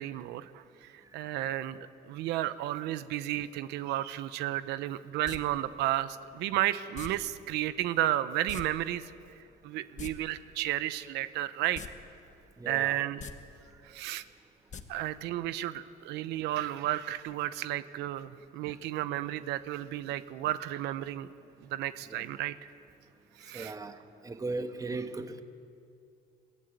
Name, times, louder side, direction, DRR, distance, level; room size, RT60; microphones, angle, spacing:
voice 1, 0.0-1.8 2.1-11.8 12.6-13.3 13.8-14.2 14.9-21.3 21.7-22.5 23.4-23.8, right 14 dB, 90° right, 13 dB, 0.8 m, -33 dB
sound 1, 5.2-5.4 6.9-7.1 8.5-8.6 8.9-9.0 9.8-10.1 11.7-11.9 12.3-12.4 13.1-13.3 14.7-14.8 15.1-15.2, left 7 dB, 45° left, 1.4 m, -41 dB
voice 2, 12.6-12.9 23.5-25.4, right 3 dB, 20° right, 8 dB, 1.4 m, -37 dB
22.0 x 16.5 x 9.5 m, 2.5 s
cardioid pair, 110°, 17 cm